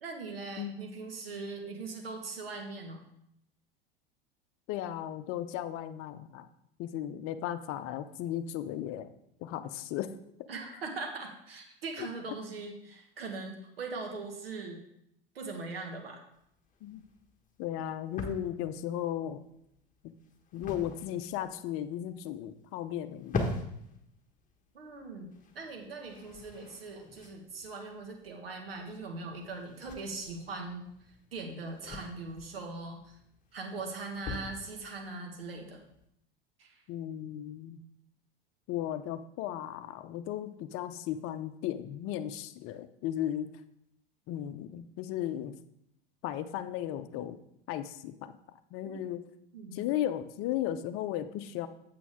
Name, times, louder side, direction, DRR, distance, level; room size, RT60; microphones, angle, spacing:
voice 1, 0.0-3.0 10.5-14.8 15.4-16.2 24.7-30.9 31.3-33.2 33.5-35.8 36.6-36.8 48.8-49.0 49.5-49.9, right 3 dB, 85° right, 3 dB, 1.7 m, -41 dB
voice 2, 0.6-1.0 4.7-6.5 6.8-9.1 9.4-10.1 12.0-12.1 16.8-17.0 17.6-19.4 20.0-20.1 20.5-23.5 36.9-37.8 38.7-43.5 44.3-45.5 46.2-47.4 47.7-48.3 48.7-49.2 49.7-51.7, left 11 dB, 50° left, 10 dB, 0.7 m, -35 dB
sound 1, 16.3-36.1, left 3 dB, 25° left, 1.4 m, -44 dB
8.4 x 7.6 x 3.6 m, 0.77 s
hypercardioid pair, 85°, 29 cm